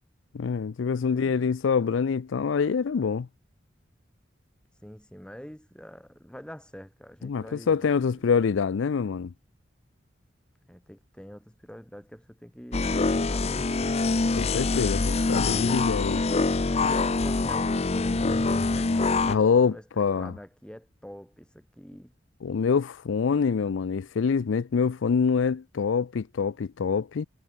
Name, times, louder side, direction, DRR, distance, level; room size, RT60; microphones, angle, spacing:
voice 1, 0.3-3.3 7.2-9.3 14.3-16.2 16.8-16.9 19.3-20.3 22.4-27.3, left 5 dB, 80° left, 0.4 m, -25 dB
voice 2, 4.8-7.9 10.7-13.8 16.5-22.1, equal, 5° left, 2.2 m, -45 dB
sound 1, 12.7-19.3, left 3 dB, 35° left, 0.6 m, -25 dB
head